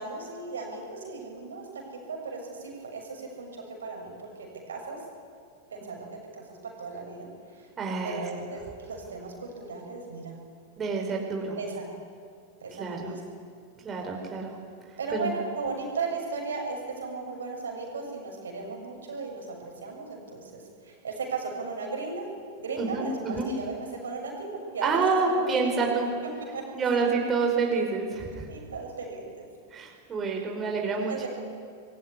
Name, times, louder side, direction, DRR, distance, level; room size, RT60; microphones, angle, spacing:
voice 1, 0.0-1.7 1.9-5.0 5.7-6.1 6.3-7.7 8.0-10.4 11.6-11.9 12.6-13.2 15.0-22.3 22.6-23.7 24.0-25.0 25.3-25.8 26.5-26.6 26.9-27.0 28.5-29.5 31.1-31.3, right 4 dB, 70° right, 1 dB, 6.9 m, -36 dB
voice 2, 7.8-8.3 10.8-11.6 12.7-13.1 13.8-14.5 14.9-15.3 22.8-23.5 24.8-26.1 26.7-28.5 29.7-31.3, right 4 dB, 25° right, 1 dB, 5.1 m, -28 dB
25.5 x 22.5 x 9.9 m, 2.2 s
figure-of-eight pair, 90°, 0 cm